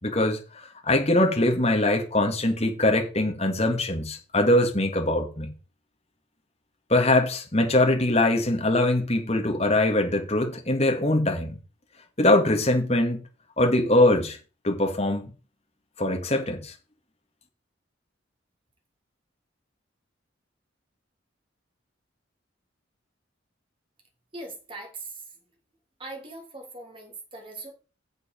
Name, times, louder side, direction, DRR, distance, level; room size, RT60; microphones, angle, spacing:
voice 1, 0.0-5.5 6.9-11.6 12.2-13.2 13.6-14.4 14.6-15.3 16.0-16.7, left 1 dB, 30° left, 2.2 m, -22 dB
voice 2, 24.3-25.2 26.0-27.7, right 2 dB, 25° right, 3.1 m, -40 dB
8.1 x 7.0 x 5.4 m
head